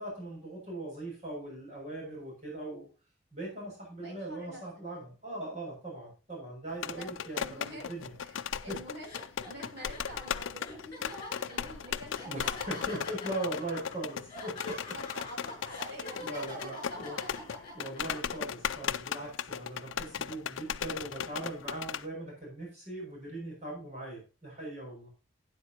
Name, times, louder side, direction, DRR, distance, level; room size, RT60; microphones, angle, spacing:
voice 1, 0.0-2.9 3.3-8.1 8.7-8.8 12.2-14.9 16.2-17.2 17.7-25.1, right 1 dB, 35° right, -3 dB, 6.5 m, -40 dB
voice 2, 4.0-4.6 7.0-7.9 8.2-13.3 14.9-17.6, right 1 dB, 65° right, -2 dB, 6.5 m, -47 dB
Fingers hitting table, 6.7-22.1, left 8 dB, 85° left, 0.5 m, -37 dB
sound 1, 8.3-8.5 9.0-18.3, left 2 dB, 25° left, 6.3 m, -46 dB
12.5 x 9.7 x 2.9 m, 0.33 s
head